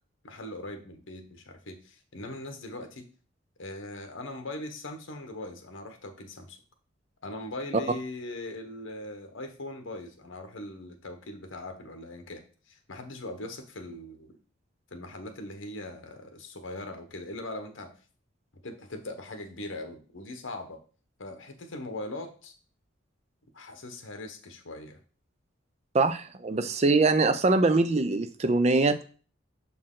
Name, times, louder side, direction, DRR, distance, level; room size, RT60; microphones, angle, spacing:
voice 1, 0.2-3.1 3.6-6.6 7.2-14.4 14.9-17.9 18.6-20.8 21.2-22.5 23.5-25.0, left 1 dB, 75° left, 6 dB, 1.0 m, -40 dB
voice 2, 25.9-29.1, right 3 dB, 30° right, 9 dB, 0.4 m, -23 dB
6.3 x 4.3 x 3.8 m, 0.39 s
head